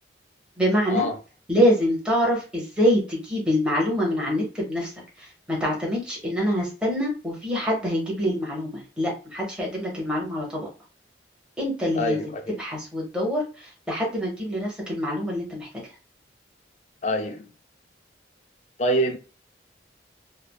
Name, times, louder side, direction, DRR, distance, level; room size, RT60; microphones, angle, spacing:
voice 1, 0.6-1.1 1.5-4.9 5.5-10.7 11.6-12.2 12.6-15.8, equal, 5° right, 0.9 m, -25 dB
voice 2, 11.9-12.6 17.0-17.5 18.8-19.2, equal, 40° left, 0.5 m, -25 dB
3.3 x 2.1 x 2.3 m
head